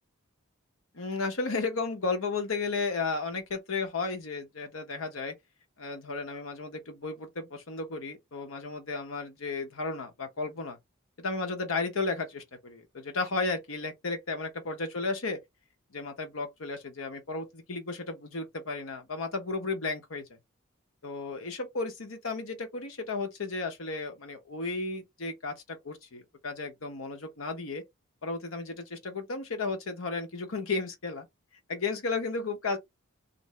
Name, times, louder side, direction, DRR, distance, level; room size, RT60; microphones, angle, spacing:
voice 1, 0.9-5.3 5.8-10.8 11.2-15.4 15.9-20.3 21.0-27.8 28.2-31.3 31.7-32.8, left 3 dB, 80° left, 1.0 m, -34 dB
2.6 x 2.5 x 3.1 m
head